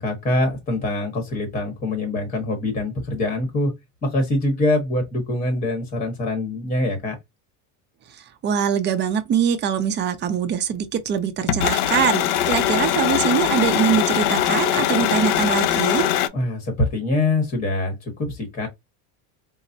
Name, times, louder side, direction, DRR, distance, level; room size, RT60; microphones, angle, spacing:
voice 1, 0.0-3.7 4.0-7.2 16.3-18.7, left 2 dB, 20° left, 1.0 m, -24 dB
voice 2, 8.1-16.0, right 8 dB, 25° right, 0.6 m, -23 dB
sound 1, 11.5-16.3, left 11 dB, 90° left, 0.7 m, -21 dB
4.6 x 2.0 x 2.6 m
supercardioid pair, 145°, 44 cm